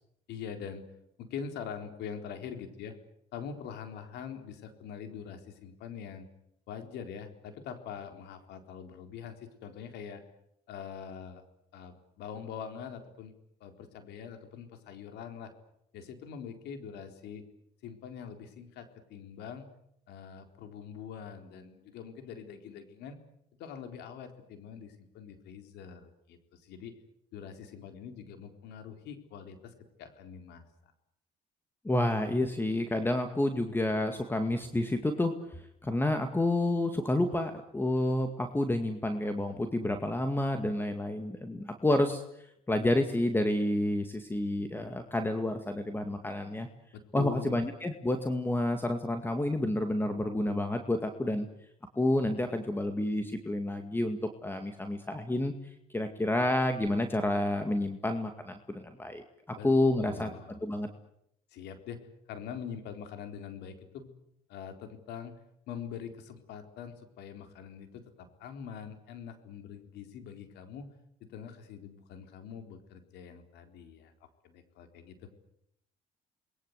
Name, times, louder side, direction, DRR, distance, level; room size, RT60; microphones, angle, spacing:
voice 1, 0.3-0.9 1.2-2.9 3.3-6.3 6.7-10.2 10.7-11.4 11.7-13.3 13.6-15.5 15.9-17.4 17.8-19.7 20.1-23.2 23.6-27.0 27.3-30.6 46.9-47.6 59.6-59.7 60.0-60.6 61.5-62.0 62.3-64.1 64.5-65.3 65.7-70.9 71.3-74.1 74.4-75.3, left 7 dB, 80° left, 7 dB, 4.1 m, -44 dB
voice 2, 31.8-46.7 47.1-51.5 51.9-59.2 59.6-60.3 60.6-60.9, left 1 dB, 10° left, 7 dB, 2.1 m, -29 dB
29.0 x 21.5 x 8.2 m, 0.76 s
cardioid pair, 110°, 17 cm